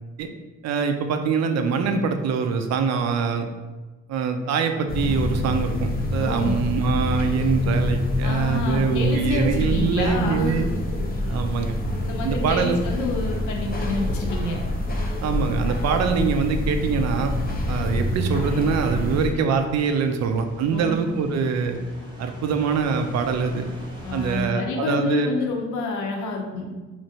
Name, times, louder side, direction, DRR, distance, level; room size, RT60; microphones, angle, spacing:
voice 1, 0.6-3.5 4.1-10.7 11.3-11.7 12.2-12.8 15.2-17.3 17.7-21.8 22.2-23.6 24.1-25.3, right 5 dB, 60° right, 6 dB, 0.4 m, -24 dB
sound 1, 4.9-19.3, left 2 dB, 30° left, 0.6 m, -26 dB
voice 2, 6.2-6.6 8.2-10.7 12.0-14.6 20.7-21.0 24.0-26.7, left 3 dB, 75° left, 1 dB, 0.6 m, -28 dB
sound 2, 6.3-24.4, equal, 15° right, 0.8 m, -38 dB
3.1 x 2.5 x 2.7 m, 1.2 s
cardioid pair, 90°, 30 cm